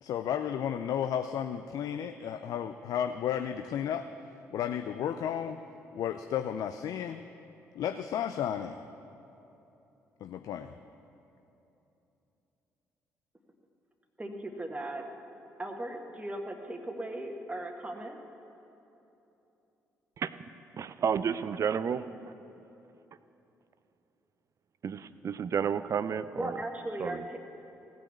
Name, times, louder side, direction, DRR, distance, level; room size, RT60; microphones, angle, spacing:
voice 1, 0.0-4.1 4.5-5.6 5.9-7.2 7.8-8.8 10.2-10.7, left 9 dB, 60° left, 8 dB, 0.4 m, -33 dB
voice 2, 14.2-15.0 15.6-18.2 26.4-27.4, right 1 dB, 15° right, 3 dB, 1.4 m, -37 dB
voice 3, 20.7-22.0 24.8-26.6 27.0-27.3, right 7 dB, 45° right, 14 dB, 0.5 m, -31 dB
16.5 x 5.9 x 8.3 m, 3.0 s
hypercardioid pair, 45°, 7 cm